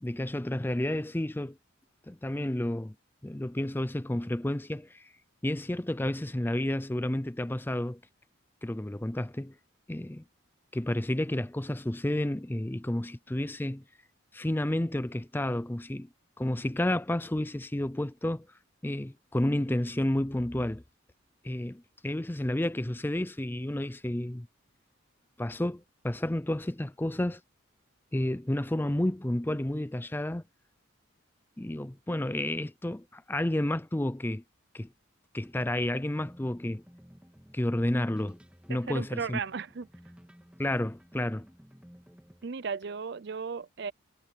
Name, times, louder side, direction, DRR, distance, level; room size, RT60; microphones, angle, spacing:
voice 1, 0.0-1.6 2.1-2.9 3.2-5.1 5.4-8.0 8.6-9.5 9.9-10.2 10.7-13.8 14.3-16.1 16.4-18.5 18.8-20.8 21.4-24.5 25.4-27.4 28.1-30.4 31.6-34.4 34.7-34.9 35.3-36.8 37.5-38.4 38.7-39.4 40.6-41.5, left 1 dB, 10° left, 0.5 m, -31 dB
sound 1, 35.4-42.5, equal, 5° right, 1.8 m, -55 dB
voice 2, 38.7-39.9 42.4-43.9, right 5 dB, 55° right, 0.5 m, -35 dB
head